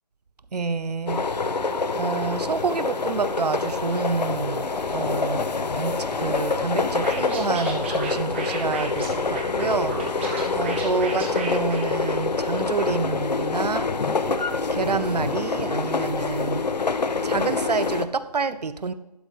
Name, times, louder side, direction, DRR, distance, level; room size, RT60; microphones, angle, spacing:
voice 1, 0.5-1.2 1.9-5.4 5.7-10.2 10.5-13.9 14.7-16.6 17.2-18.9, right 4 dB, 75° right, 14 dB, 0.7 m, -28 dB
sound 1, 1.1-18.0, left 4 dB, 80° left, 0.8 m, -26 dB
Scratching (performance technique), 7.0-12.5, right 3 dB, 15° right, 1.1 m, -35 dB
11.5 x 4.0 x 5.0 m, 1.0 s
figure-of-eight pair, 165°, 21 cm